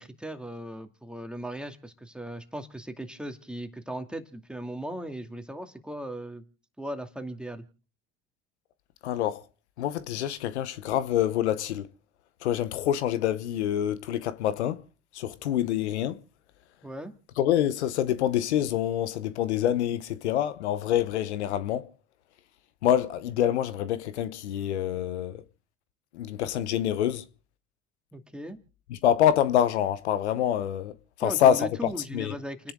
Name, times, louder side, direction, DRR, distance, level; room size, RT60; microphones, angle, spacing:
voice 1, 0.0-6.4 6.8-7.6 16.8-17.1 28.1-28.6 31.2-32.7, right 1 dB, 5° right, 2.4 m, -38 dB
voice 2, 9.0-9.4 9.8-11.9 12.4-14.8 15.1-16.2 17.4-21.9 22.8-25.4 26.1-27.2 28.9-30.9 31.2-31.7 32.1-32.3, left 11 dB, 90° left, 0.9 m, -26 dB
29.5 x 10.5 x 3.8 m
hypercardioid pair, 75°, 33 cm